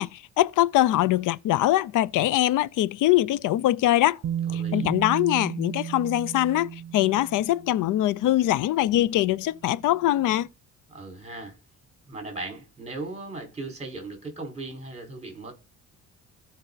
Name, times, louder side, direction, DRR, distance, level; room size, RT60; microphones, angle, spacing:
voice 1, 0.0-4.2 4.5-10.5, left 14 dB, 80° left, 0.5 m, -23 dB
Bass guitar, 4.2-8.2 9.3-9.4, right 9 dB, 65° right, 0.8 m, -33 dB
voice 2, 4.5-5.0 10.9-11.6 12.1-15.5, right 2 dB, 20° right, 4.8 m, -37 dB
16.0 x 5.5 x 4.0 m
cardioid pair, 115°, 31 cm